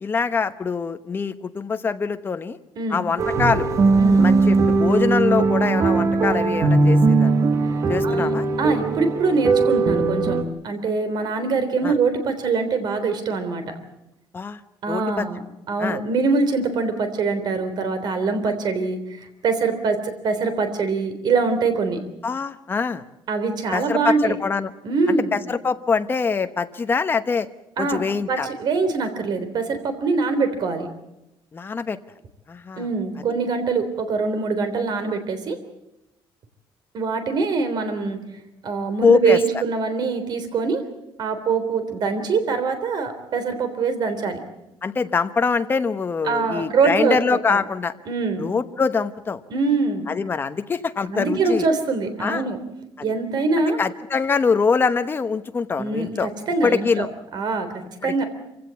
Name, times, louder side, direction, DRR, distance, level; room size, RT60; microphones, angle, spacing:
voice 1, 0.0-2.6 2.9-3.7 4.2-7.3 7.9-8.4 11.8-11.9 14.3-14.6 14.9-15.3 15.8-16.0 22.2-23.0 23.7-24.7 25.3-27.5 27.8-28.5 31.5-32.0 32.5-32.9 39.0-39.4 44.8-47.9 48.4-49.4 50.1-51.7 52.2-52.4 53.0-53.1 53.8-56.3 56.6-57.1 58.0-58.1, left 5 dB, 20° left, 9 dB, 1.0 m, -23 dB
sound 1, 3.2-10.4, right 3 dB, 30° right, 1.4 m, -19 dB
voice 2, 8.0-13.6 14.8-15.4 15.7-20.0 20.2-22.0 23.3-24.4 24.8-25.4 27.8-28.0 28.3-30.9 32.8-35.6 36.9-38.2 38.6-40.8 41.2-44.4 46.2-47.2 47.5-47.6 48.1-48.5 49.5-50.1 51.1-52.6 53.0-53.8 55.8-57.1 57.3-58.2, right 4 dB, 45° right, 9 dB, 3.5 m, -23 dB
25.5 x 16.5 x 8.3 m, 0.90 s
cardioid pair, 160°, 10 cm